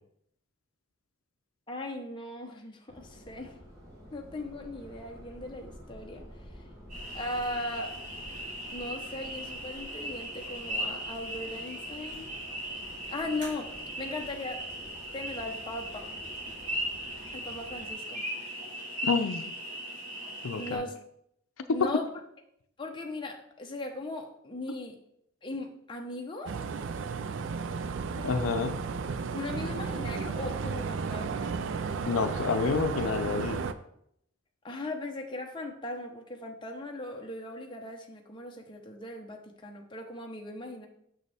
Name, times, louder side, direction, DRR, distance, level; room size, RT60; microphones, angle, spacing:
voice 1, 1.7-3.6 4.1-6.6 7.1-8.0 8.7-12.3 13.1-14.9 15.1-16.2 17.3-18.2 20.6-21.0 21.7-22.1 22.8-25.0 25.4-26.6 29.3-31.6 34.6-40.9, left 2 dB, 25° left, 2 dB, 0.7 m, -38 dB
Subway metro underground, 2.9-17.9, equal, 15° right, 3.0 m, -50 dB
sound 1, 6.9-20.8, right 1 dB, 40° right, 2.9 m, -38 dB
voice 2, 19.0-19.5 20.4-20.8 28.2-28.8 32.0-33.6, left 5 dB, 90° left, 9 dB, 0.5 m, -29 dB
sound 2, 26.5-33.7, right 5 dB, 65° right, 0.4 m, -33 dB
6.6 x 6.3 x 3.4 m, 0.73 s
head